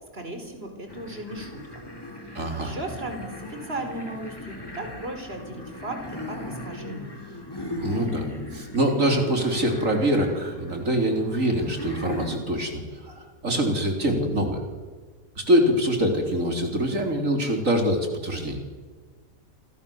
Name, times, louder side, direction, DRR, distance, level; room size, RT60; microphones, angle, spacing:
voice 1, 0.1-1.8 2.6-7.1, right 1 dB, 45° right, 5 dB, 5.1 m, -36 dB
sound 1, 0.9-12.4, left 1 dB, 15° left, 3.7 m, -38 dB
voice 2, 2.3-2.8 7.8-14.6 15.4-18.6, equal, 65° right, 3 dB, 4.1 m, -24 dB
29.5 x 24.0 x 7.3 m, 1.4 s
omnidirectional pair, 1.5 m